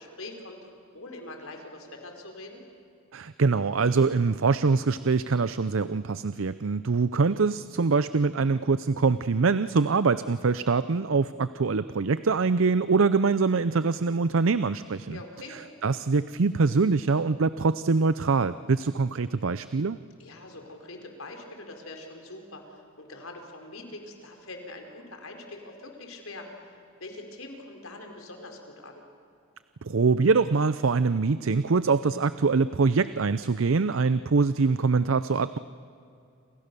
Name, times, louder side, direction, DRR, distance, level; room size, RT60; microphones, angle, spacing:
voice 1, 0.0-2.6 15.1-15.6 20.2-29.0, left 2 dB, 75° left, 3 dB, 4.4 m, -43 dB
voice 2, 3.1-15.2 15.5-20.0 29.8-35.6, right 4 dB, 70° right, 14 dB, 0.6 m, -24 dB
28.5 x 27.0 x 6.9 m, 2.5 s
head